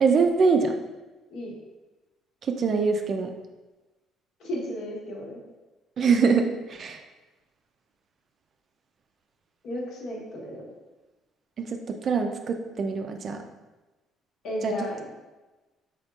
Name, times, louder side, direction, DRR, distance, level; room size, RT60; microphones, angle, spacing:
voice 1, 0.0-0.8 2.5-3.3 6.0-7.0 11.6-13.4 14.6-14.7, right 5 dB, 40° right, 6 dB, 0.4 m, -24 dB
voice 2, 4.4-5.4 9.6-10.7 14.4-15.1, equal, 65° left, -3 dB, 1.3 m, -34 dB
5.1 x 4.4 x 2.4 m, 1.1 s
cardioid pair, 150°, 0 cm